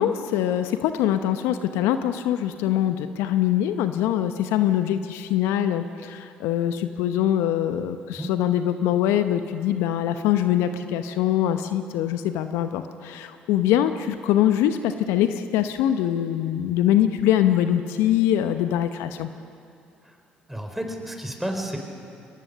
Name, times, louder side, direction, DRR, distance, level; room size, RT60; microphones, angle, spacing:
voice 1, 0.0-19.3, left 11 dB, 75° left, 10 dB, 0.8 m, -23 dB
voice 2, 20.5-21.8, right 1 dB, 5° right, 4 dB, 4.6 m, -31 dB
22.0 x 19.5 x 6.8 m, 2.5 s
hypercardioid pair, 50°, 5 cm